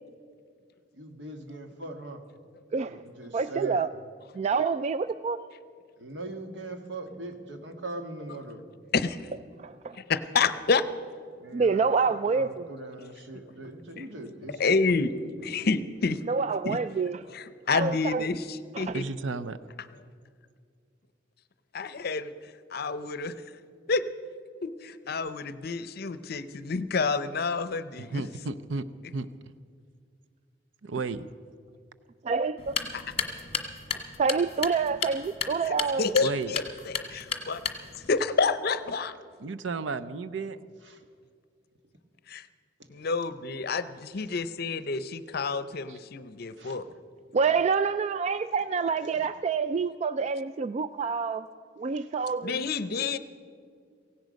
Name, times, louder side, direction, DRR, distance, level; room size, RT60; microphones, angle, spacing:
voice 1, 0.9-2.2 2.8-3.9 6.0-8.6 11.4-15.0 15.4-15.6 38.0-38.1 40.9-41.0 43.0-43.1 46.6-46.9 49.0-49.2 51.9-52.3, right 2 dB, 70° right, 5 dB, 1.6 m, -41 dB
voice 2, 3.3-3.9 4.4-5.4 9.6-10.0 11.5-12.6 16.3-17.2 17.7-18.2 18.7-18.9 32.2-32.8 34.2-36.1 47.3-51.5 51.8-52.6, right 5 dB, 35° right, 12 dB, 0.3 m, -27 dB
voice 3, 10.0-10.8 14.0-14.1 14.6-15.1 15.4-16.2 16.6-16.8 17.3-19.0 21.7-22.3 22.7-23.3 23.9-24.0 24.6-28.2 32.9-33.0 35.6-37.6 38.1-39.1 42.3-42.5 42.9-46.8 52.4-53.2, left 4 dB, 55° left, 13 dB, 0.7 m, -29 dB
voice 4, 18.9-19.6 28.0-29.6 30.8-31.3 36.2-36.5 39.4-40.6 45.9-46.0, right 3 dB, 85° right, 12 dB, 0.6 m, -33 dB
sound 1, 32.6-38.1, left 5 dB, 30° left, 1.4 m, -34 dB
17.0 x 16.5 x 5.2 m, 2.2 s
head